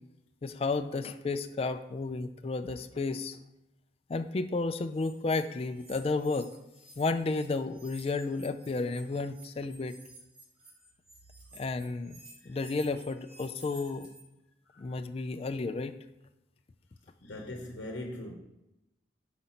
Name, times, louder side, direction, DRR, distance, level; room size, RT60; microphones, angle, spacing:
voice 1, 0.4-3.4 4.1-6.5 7.0-10.0 11.5-12.2 12.5-14.1 14.8-16.0, left 3 dB, 30° left, 0.3 m, -32 dB
sound 1, 4.9-7.0 7.3-14.2, right 1 dB, 55° right, 2.4 m, -54 dB
voice 2, 17.2-18.3, left 1 dB, 75° left, 0.9 m, -40 dB
5.1 x 4.2 x 5.8 m
head